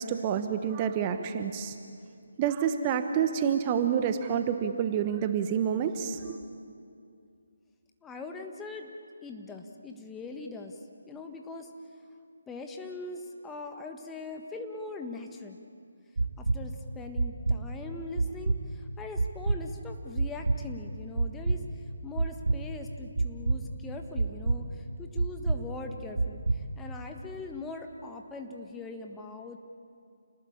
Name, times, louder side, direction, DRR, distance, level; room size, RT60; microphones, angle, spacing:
voice 1, 0.0-1.7 2.4-6.4, right 8 dB, 25° right, 8 dB, 1.2 m, -28 dB
voice 2, 8.0-8.9 9.2-10.8 11.1-11.7 12.5-15.6 16.4-29.6, left 3 dB, 10° left, 3 dB, 1.4 m, -41 dB
sound 1, 16.2-16.6 17.2-17.6 18.2-18.6 19.2-19.6 20.2-20.6 21.2-21.6 22.2-22.6 23.2-23.6 24.2-24.6 25.2-25.6 26.2-26.6, right 3 dB, 70° right, 2.0 m, -26 dB
29.0 x 19.0 x 8.8 m, 2.4 s
figure-of-eight pair, 150°, 0 cm